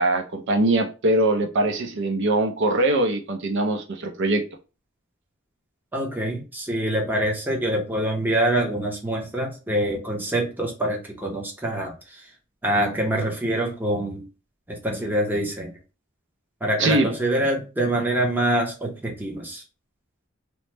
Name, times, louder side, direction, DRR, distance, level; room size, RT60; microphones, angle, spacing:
voice 1, 0.0-4.4 16.8-17.1, right 2 dB, 60° right, 4 dB, 0.5 m, -22 dB
voice 2, 5.9-12.3 12.6-14.2 14.7-15.7 16.6-19.6, right 1 dB, 10° right, 0 dB, 0.7 m, -25 dB
3.0 x 2.1 x 3.1 m, 0.32 s
head